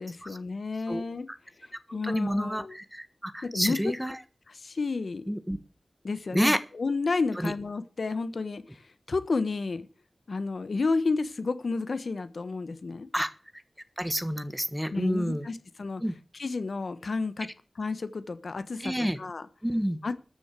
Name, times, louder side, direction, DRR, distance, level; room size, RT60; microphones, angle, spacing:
voice 1, 0.0-1.3 1.6-2.7 3.4-3.9 4.5-5.2 6.0-9.9 10.3-13.1 14.9-16.0 16.3-17.5 17.8-19.4 20.0-20.1, left 3 dB, 70° left, 1.2 m, -31 dB
voice 2, 1.9-4.2 5.3-5.6 6.3-6.6 7.4-7.5 13.1-13.3 14.0-15.5 16.0-16.1 18.8-19.2 19.6-20.0, equal, 5° right, 1.4 m, -29 dB
13.5 x 6.5 x 8.3 m
wide cardioid pair, 85°, 0 cm